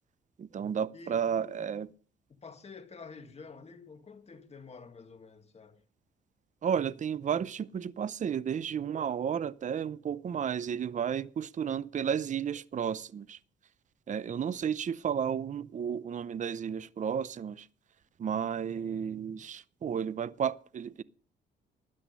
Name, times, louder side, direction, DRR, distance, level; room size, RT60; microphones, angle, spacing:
voice 1, 0.4-1.9 6.6-13.4 14.1-17.7 18.2-21.0, right 8 dB, 40° right, 0.6 m, -32 dB
voice 2, 0.9-1.7 2.3-5.8, left 4 dB, 30° left, 1.7 m, -49 dB
13.0 x 9.9 x 5.4 m
cardioid pair, 90°, 20 cm